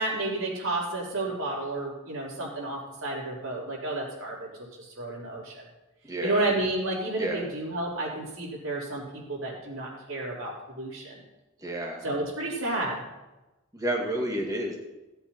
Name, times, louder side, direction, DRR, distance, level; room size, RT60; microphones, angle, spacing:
voice 1, 0.0-5.6 6.2-11.1 12.0-13.0, right 2 dB, 85° right, -4 dB, 4.4 m, -31 dB
voice 2, 6.1-6.4 7.2-7.4 11.6-12.0 13.7-14.8, right 1 dB, 15° right, 0 dB, 2.1 m, -30 dB
16.0 x 8.1 x 4.4 m, 1.0 s
head